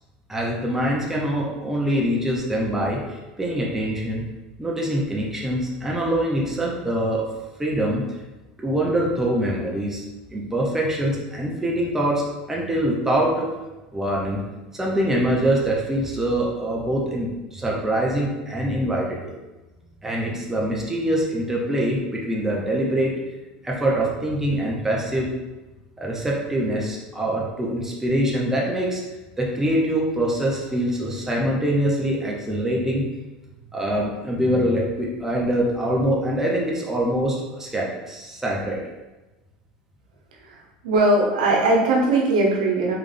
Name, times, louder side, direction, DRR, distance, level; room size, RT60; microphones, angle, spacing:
voice 1, 0.3-4.3 4.6-7.3 7.6-8.0 8.6-10.0 10.3-12.2 12.5-13.5 13.9-14.4 14.7-19.4 20.0-23.1 23.6-25.3 26.0-29.0 29.4-33.0 33.7-38.8, right 1 dB, 10° right, -3 dB, 0.8 m, -24 dB
voice 2, 40.4-42.9, right 2 dB, 85° right, -1 dB, 0.9 m, -20 dB
3.5 x 3.5 x 3.4 m, 1.1 s
supercardioid pair, 95°, 4 cm